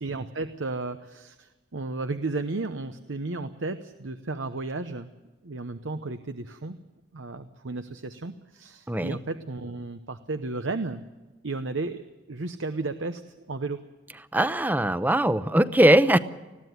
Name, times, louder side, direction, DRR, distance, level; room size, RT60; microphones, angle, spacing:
voice 1, 0.0-5.1 5.4-6.8 7.1-11.0 11.4-13.2 13.5-13.8, right 3 dB, 85° right, 9 dB, 0.9 m, -33 dB
voice 2, 8.9-9.2 14.3-16.2, right 1 dB, 10° right, 13 dB, 0.6 m, -20 dB
20.5 x 15.5 x 9.3 m, 1.2 s
head